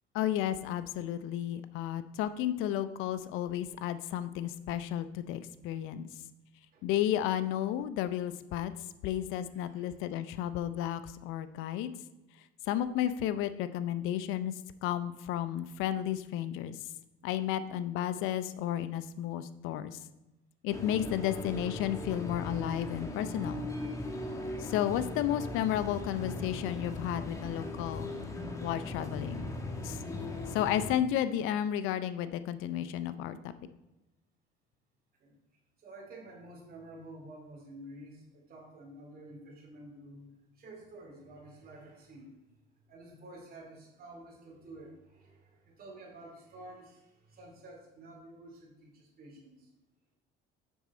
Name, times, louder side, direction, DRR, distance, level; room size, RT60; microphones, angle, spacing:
voice 1, 0.1-6.1 6.8-8.7 9.0-11.9 12.7-14.5 14.8-16.8 17.2-20.0 20.6-23.7 24.6-28.1 28.6-29.5 29.8-30.0 30.5-33.5, left 11 dB, 80° left, 13 dB, 0.6 m, -32 dB
voice 2, 9.5-9.9 35.2-35.4 35.8-42.4 42.9-49.7, right 1 dB, 45° right, -1 dB, 2.7 m, -50 dB
sound 1, 20.7-30.9, left 2 dB, 15° left, 1.2 m, -38 dB
7.2 x 6.1 x 4.2 m, 0.98 s
cardioid pair, 100°, 21 cm